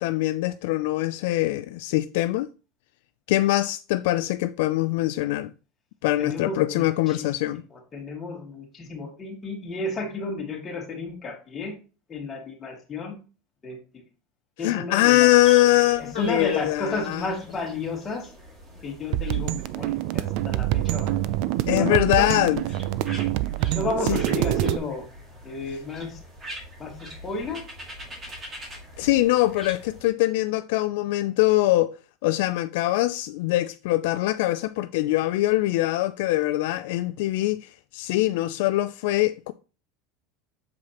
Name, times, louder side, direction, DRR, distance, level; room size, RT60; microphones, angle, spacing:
voice 1, 0.0-2.5 3.3-5.5 6.0-7.6 14.6-17.2 21.7-22.6 24.1-24.2 29.0-31.9 32.2-39.5, left 16 dB, 75° left, 0.3 m, -23 dB
voice 2, 6.2-7.3 7.7-11.7 12.1-13.1 13.6-13.8 14.6-15.3 16.0-18.3 18.8-21.3 21.7-22.3 23.7-25.1 25.4-26.2 26.8-27.6, left 3 dB, 20° left, 2.3 m, -32 dB
sound 1, 15.3-30.1, equal, 30° right, 2.2 m, -44 dB
sound 2, 19.1-24.8, right 15 dB, 60° right, 0.4 m, -26 dB
7.0 x 4.9 x 3.0 m
supercardioid pair, 135°, 0 cm